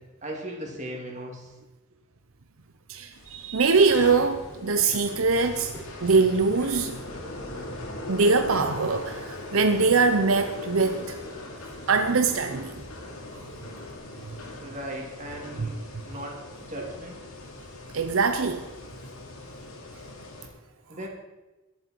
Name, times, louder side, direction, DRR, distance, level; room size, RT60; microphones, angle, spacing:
voice 1, 0.2-1.5 14.6-15.8 16.1-16.4 16.7-17.2 20.9-21.1, right 1 dB, 35° right, -1 dB, 3.1 m, -37 dB
voice 2, 2.9-5.7 6.0-7.0 8.1-11.2 11.9-12.8 15.6-15.7 17.9-18.6, right 4 dB, 75° right, 7 dB, 0.8 m, -23 dB
sound 1, 3.1-20.5, left 2 dB, 90° left, 2.8 m, -40 dB
Run, 3.9-14.0, right 1 dB, 10° left, 4.5 m, -48 dB
21.5 x 8.0 x 4.7 m, 1.1 s
head